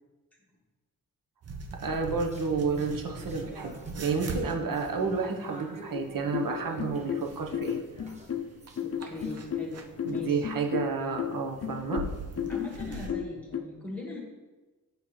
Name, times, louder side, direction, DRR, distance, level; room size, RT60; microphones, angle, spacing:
sound 1, 1.4-13.1, right 3 dB, 45° right, 0.7 m, -43 dB
voice 1, 1.8-7.8 10.0-12.0, right 4 dB, 70° right, 2 dB, 1.0 m, -31 dB
sound 2, 1.9-9.4, right 1 dB, 20° right, 1.0 m, -48 dB
sound 3, 5.9-13.6, left 8 dB, 45° left, 0.5 m, -34 dB
voice 2, 8.8-9.8 10.1-10.4 12.5-14.2, left 2 dB, 5° left, -1 dB, 1.6 m, -40 dB
8.2 x 5.1 x 3.1 m, 1.2 s
wide cardioid pair, 115°, 34 cm